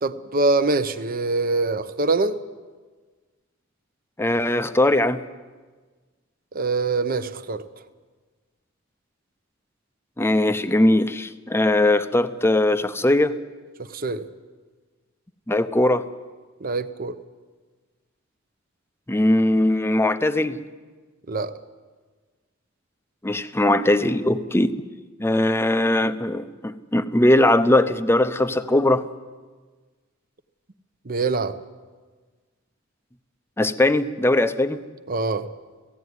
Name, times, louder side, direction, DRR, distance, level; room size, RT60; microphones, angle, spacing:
voice 1, 0.0-2.3 6.5-7.6 13.9-14.2 16.6-17.2 21.3-21.5 31.1-31.5 35.1-35.5, right 3 dB, 45° right, 11 dB, 0.9 m, -24 dB
voice 2, 4.2-5.2 10.2-13.3 15.5-16.0 19.1-20.6 23.2-24.7 25.2-29.0 33.6-34.8, left 1 dB, 10° left, 11 dB, 0.7 m, -20 dB
17.5 x 15.5 x 9.6 m, 1.4 s
head